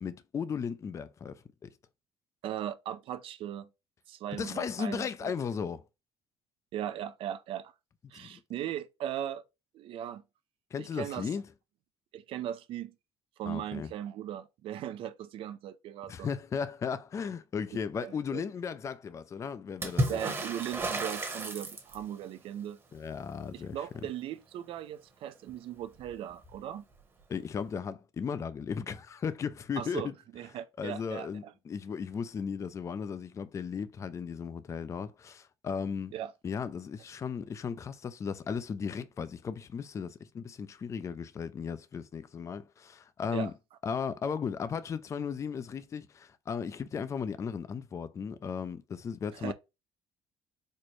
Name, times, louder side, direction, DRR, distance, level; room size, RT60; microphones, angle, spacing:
voice 1, 0.0-1.3 1.6-1.7 4.3-5.8 8.1-8.4 10.7-11.4 13.4-13.9 16.1-20.2 22.9-23.8 27.3-30.1 30.8-36.1 36.4-43.5 43.8-49.5, left 6 dB, 30° left, 0.4 m, -36 dB
voice 2, 2.4-3.7 4.1-5.3 6.7-7.7 8.1-9.4 9.7-10.2 10.8-11.3 12.1-12.9 13.4-16.3 18.0-18.4 20.1-22.8 23.5-26.9 29.8-31.5 36.1-36.3 43.3-43.5 49.3-49.5, right 11 dB, 60° right, 0.5 m, -38 dB
Water / Splash splatter, 19.8-22.2 25.5-25.6 25.8-26.6 27.7-27.8, right 1 dB, 25° right, 1.0 m, -33 dB
4.2 x 2.2 x 3.1 m
cardioid pair, 105°, 10 cm